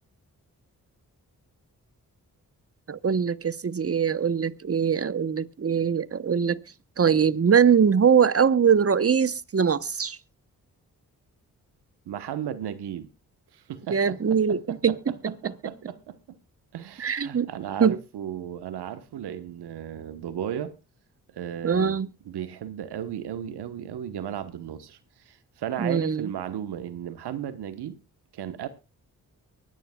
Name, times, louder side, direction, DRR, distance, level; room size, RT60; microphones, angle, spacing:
voice 1, 2.9-6.6 7.0-10.2 13.9-15.0 15.2-15.3 17.0-17.5 17.8-18.0 21.6-22.1 25.8-26.3, right 7 dB, 35° right, 1.0 m, -22 dB
voice 2, 12.1-13.1 13.5-16.4 16.7-20.7 21.3-22.0 22.2-25.0 25.2-28.0 28.3-28.7, right 10 dB, 80° right, 1.2 m, -35 dB
24.0 x 10.5 x 2.3 m
supercardioid pair, 40°, 39 cm